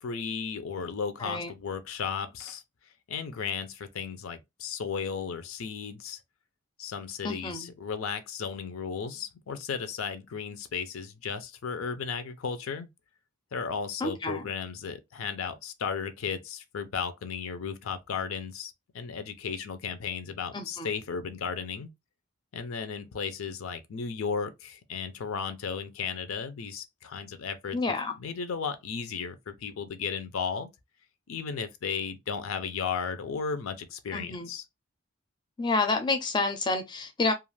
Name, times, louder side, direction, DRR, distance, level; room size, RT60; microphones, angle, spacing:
voice 1, 0.0-2.6 3.1-6.2 6.8-12.9 13.5-21.9 22.5-27.8 28.2-30.7 31.3-34.6, left 6 dB, 85° left, 0.5 m, -35 dB
voice 2, 7.2-7.7 14.0-14.5 20.5-20.9 27.7-28.1 34.1-34.5 35.6-37.3, left 3 dB, 20° left, 0.4 m, -29 dB
2.4 x 2.4 x 3.1 m
head